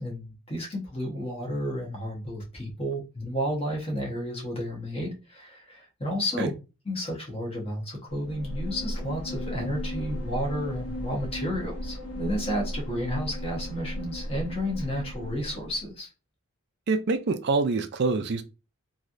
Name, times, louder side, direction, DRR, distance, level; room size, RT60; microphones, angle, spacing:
voice 1, 0.0-6.5 6.8-16.1, equal, 25° left, 1.0 m, -32 dB
sound 1, 8.1-15.9, equal, 80° left, 1.0 m, -35 dB
voice 2, 16.9-18.4, right 3 dB, 50° right, 0.4 m, -25 dB
3.1 x 2.7 x 2.5 m
head